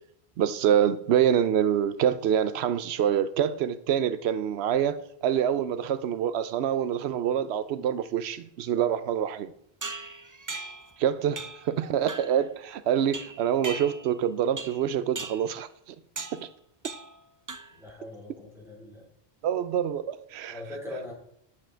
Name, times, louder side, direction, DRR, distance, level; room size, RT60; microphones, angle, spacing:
voice 1, 0.4-5.0 5.2-9.5 11.0-15.7 16.3-16.5 19.4-20.6, right 9 dB, 90° right, 0.8 m, -26 dB
sound 1, 9.8-10.9 11.4-11.7 12.1-12.4 13.1-14.2 14.6-14.9 15.2-15.5 16.2-16.5 16.8-17.2 17.5-17.9, right 3 dB, 30° right, 0.4 m, -38 dB
voice 2, 17.8-19.1 20.5-21.1, left 1 dB, ahead, 4.3 m, -40 dB
9.9 x 7.6 x 4.4 m
omnidirectional pair, 1.1 m